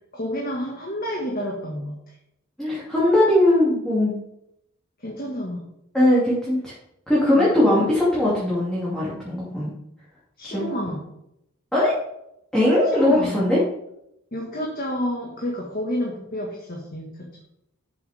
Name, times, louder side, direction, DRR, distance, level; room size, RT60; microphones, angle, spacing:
voice 1, 0.1-2.1 5.0-5.7 7.3-7.5 10.4-11.0 12.9-13.4 14.3-17.3, equal, 40° left, -2 dB, 1.8 m, -30 dB
voice 2, 2.6-4.1 5.9-6.7 7.1-9.7 10.4-10.9 11.7-11.9 12.5-13.6, left 1 dB, 5° left, -8 dB, 2.7 m, -20 dB
11.5 x 7.6 x 3.6 m, 0.80 s
head